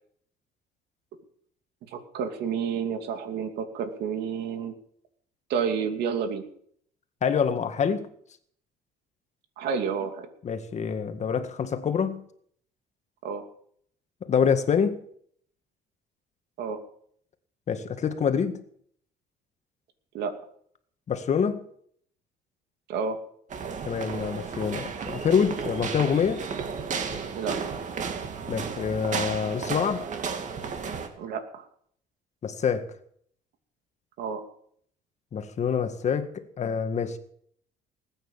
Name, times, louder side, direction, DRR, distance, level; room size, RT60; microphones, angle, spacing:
voice 1, 1.9-4.8 5.5-6.4 9.6-10.3 13.2-13.5 16.6-16.8 20.1-20.3 22.9-23.2 27.3-27.6 31.2-31.6 34.2-34.4, right 6 dB, 75° right, 2.8 m, -30 dB
voice 2, 7.2-8.1 10.4-12.2 14.3-15.0 17.7-18.6 21.1-21.6 23.9-26.5 28.5-30.1 32.4-32.9 35.3-37.2, left 7 dB, 45° left, 1.8 m, -26 dB
sound 1, 23.5-31.1, right 5 dB, 45° right, 2.3 m, -33 dB
19.5 x 9.1 x 7.3 m
cardioid pair, 110°, 17 cm